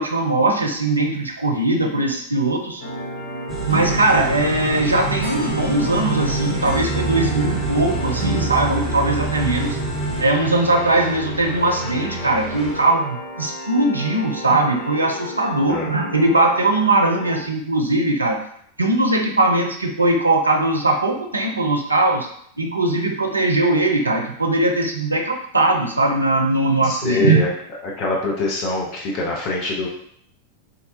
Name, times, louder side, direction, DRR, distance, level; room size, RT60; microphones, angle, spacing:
voice 1, 0.0-2.8 3.7-9.8 10.2-18.4 18.8-22.3 22.6-27.4, right 2 dB, 80° right, 3 dB, 0.4 m, -20 dB
sound 1, 2.8-17.4, left 1 dB, 65° left, 1.2 m, -32 dB
sound 2, 3.5-10.2, right 4 dB, 15° right, 0.7 m, -27 dB
sound 3, 3.9-12.8, equal, 20° left, 1.2 m, -31 dB
voice 2, 26.8-27.5 27.8-29.9, left 3 dB, 40° left, -2 dB, 0.6 m, -24 dB
2.7 x 2.2 x 2.5 m, 0.66 s
figure-of-eight pair, 90°, 0 cm